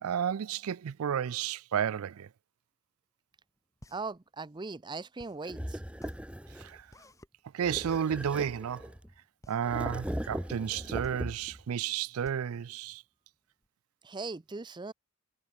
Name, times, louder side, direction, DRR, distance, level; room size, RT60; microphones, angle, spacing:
voice 1, 0.0-2.3 6.6-6.9 7.5-8.9 9.5-13.0, right 8 dB, 90° right, 0.4 m, -32 dB
sound 1, 3.3-13.7, equal, 15° left, 6.6 m, -56 dB
voice 2, 3.9-5.8 14.0-14.9, right 3 dB, 20° right, 0.5 m, -39 dB
sound 2, 5.4-6.8 7.6-9.1 9.6-11.6, equal, 5° right, 1.5 m, -39 dB
head